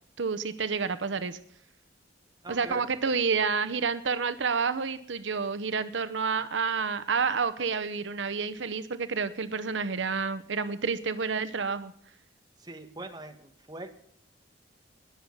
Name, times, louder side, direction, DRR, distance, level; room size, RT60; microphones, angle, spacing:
voice 1, 0.2-1.4 2.5-11.9, right 5 dB, 80° right, 12 dB, 0.8 m, -29 dB
voice 2, 2.4-2.9 12.6-13.9, right 2 dB, 20° right, 5 dB, 1.6 m, -42 dB
20.5 x 7.3 x 5.3 m, 0.65 s
head